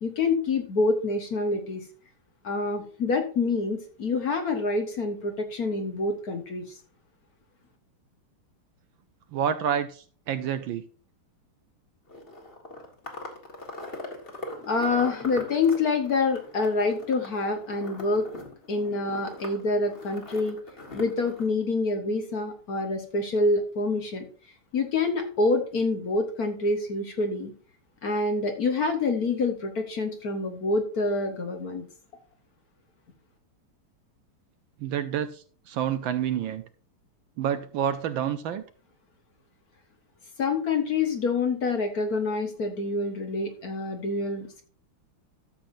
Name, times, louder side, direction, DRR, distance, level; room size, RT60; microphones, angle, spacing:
voice 1, 0.0-1.8 2.4-6.7 14.6-18.3 18.7-20.6 20.9-24.2 24.7-27.5 28.0-31.8 40.4-44.6, left 3 dB, 50° left, 5 dB, 1.3 m, -26 dB
voice 2, 9.3-10.8 34.8-36.6 37.4-38.6, right 9 dB, 75° right, 10 dB, 1.3 m, -28 dB
sound 1, 12.1-21.5, left 2 dB, 30° left, 1.6 m, -41 dB
13.0 x 7.1 x 2.6 m, 0.40 s
omnidirectional pair, 2.4 m